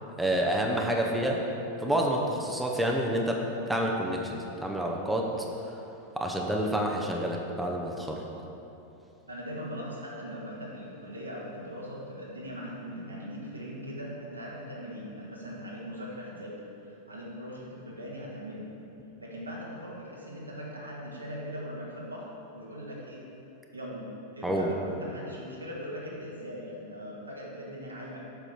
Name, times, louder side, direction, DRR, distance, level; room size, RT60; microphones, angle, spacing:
voice 1, 0.2-1.4 1.8-5.3 6.2-8.2 24.4-24.7, right 1 dB, 5° right, 0 dB, 0.8 m, -28 dB
voice 2, 9.3-16.5 16.8-18.7 19.2-23.2 23.7-28.2, equal, 85° right, -4 dB, 1.6 m, -40 dB
7.9 x 6.1 x 4.4 m, 2.8 s
figure-of-eight pair, 90°, 0 cm